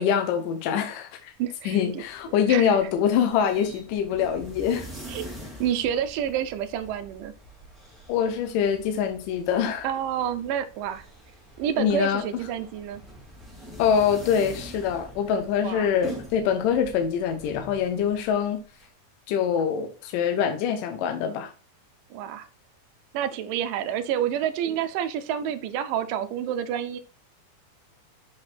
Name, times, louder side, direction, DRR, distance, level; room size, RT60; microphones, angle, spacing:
voice 1, 0.0-1.3 1.7-4.9 8.1-9.9 11.8-12.2 13.8-18.6 19.3-21.5, left 8 dB, 75° left, 2.2 m, -24 dB
voice 2, 1.4-2.0 2.5-2.8 5.1-5.3 5.6-7.3 9.8-11.1 11.6-13.0 15.6-15.9 22.1-22.5 23.1-27.0, right 10 dB, 80° right, 2.1 m, -28 dB
sound 1, 1.8-18.9, right 1 dB, ahead, 1.1 m, -45 dB
7.8 x 4.0 x 4.0 m
omnidirectional pair, 4.2 m